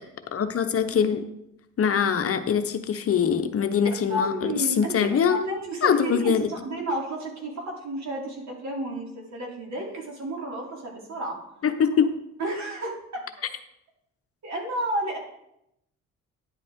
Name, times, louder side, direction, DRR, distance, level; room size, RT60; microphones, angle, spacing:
voice 1, 0.3-1.2 1.8-5.4 5.8-6.5 11.6-12.1, left 7 dB, 50° left, 8 dB, 0.9 m, -23 dB
voice 2, 4.1-4.9 5.3-11.4 12.4-13.2 14.4-15.2, right 1 dB, 65° right, -1 dB, 3.0 m, -31 dB
10.5 x 8.1 x 3.6 m, 0.80 s
cardioid pair, 90°, 30 cm